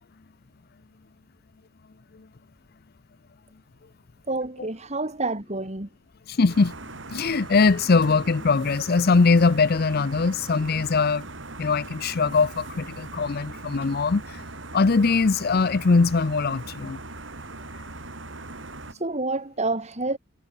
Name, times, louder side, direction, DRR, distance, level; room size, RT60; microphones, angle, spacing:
voice 1, 4.3-5.9 19.0-20.2, right 2 dB, 35° right, 3.1 m, -28 dB
voice 2, 6.3-6.7 7.1-11.2 11.6-14.4 14.7-17.0, left 4 dB, 50° left, 0.6 m, -21 dB
sound 1, 6.5-18.9, right 2 dB, 70° right, 4.1 m, -40 dB
head